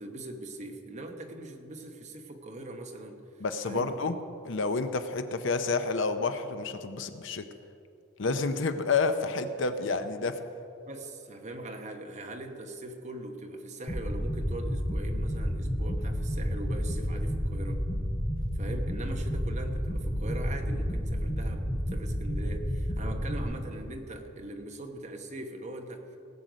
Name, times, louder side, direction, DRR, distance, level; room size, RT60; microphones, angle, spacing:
voice 1, 0.0-4.0 10.9-17.8 18.5-26.2, right 1 dB, 35° right, 4 dB, 1.1 m, -41 dB
voice 2, 3.4-4.2 4.4-7.4 8.2-10.4, left 4 dB, 65° left, 9 dB, 0.7 m, -29 dB
sound 1, 13.9-23.4, equal, 15° left, 1.2 m, -31 dB
18.0 x 7.8 x 5.1 m, 2.7 s
head